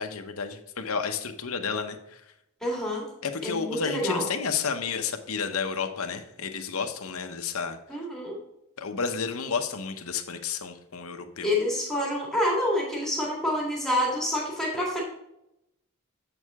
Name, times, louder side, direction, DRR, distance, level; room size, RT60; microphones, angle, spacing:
voice 1, 0.0-2.2 3.2-7.8 8.8-11.5, left 5 dB, 70° left, 7 dB, 0.9 m, -31 dB
voice 2, 2.6-3.1 3.4-4.3 7.9-8.4 11.4-15.0, left 1 dB, ahead, -3 dB, 2.0 m, -27 dB
7.9 x 6.5 x 3.6 m, 0.86 s
head